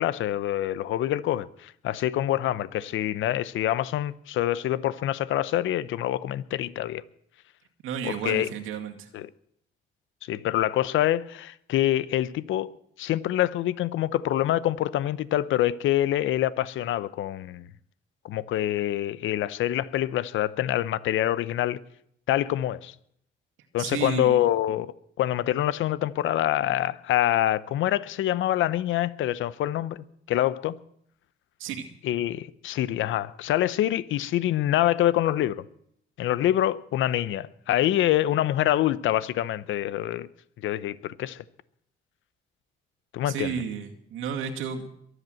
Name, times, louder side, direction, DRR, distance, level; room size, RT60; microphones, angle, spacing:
voice 1, 0.0-7.0 8.0-8.5 9.1-9.3 10.3-12.7 13.0-17.6 18.2-21.8 22.3-22.9 23.7-24.9 25.2-30.7 32.0-35.6 36.2-40.3 40.6-41.4 43.1-43.6, left 13 dB, 80° left, 0.7 m, -26 dB
voice 2, 7.8-9.1 23.8-24.4 31.6-31.9 43.2-44.9, right 7 dB, 90° right, 2.1 m, -32 dB
22.5 x 8.1 x 7.7 m
cardioid pair, 90°, 20 cm